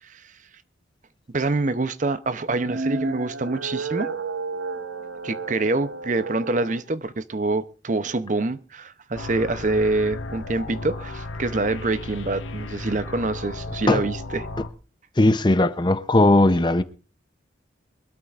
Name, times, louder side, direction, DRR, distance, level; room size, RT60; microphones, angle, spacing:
voice 1, 1.3-4.1 5.2-14.5, right 2 dB, 40° right, 0.6 m, -26 dB
sound 1, 2.4-6.8, right 3 dB, 80° right, 0.9 m, -32 dB
sound 2, 9.1-14.7, left 2 dB, 90° left, 1.3 m, -34 dB
voice 2, 15.2-16.8, left 2 dB, 25° left, 0.6 m, -18 dB
23.0 x 13.0 x 2.4 m
head